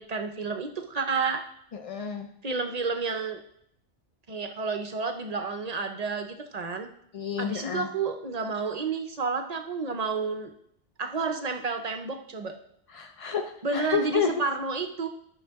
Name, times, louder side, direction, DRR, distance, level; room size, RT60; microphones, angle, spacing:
voice 1, 0.0-1.4 2.4-3.4 4.3-6.9 7.4-10.5 11.0-12.5 13.6-15.1, right 4 dB, 45° right, 6 dB, 0.6 m, -30 dB
voice 2, 1.7-2.3 7.1-7.9 12.9-13.4 13.7-14.3, left 7 dB, 50° left, 3 dB, 0.4 m, -29 dB
11.5 x 5.6 x 3.5 m, 0.71 s
omnidirectional pair, 1.3 m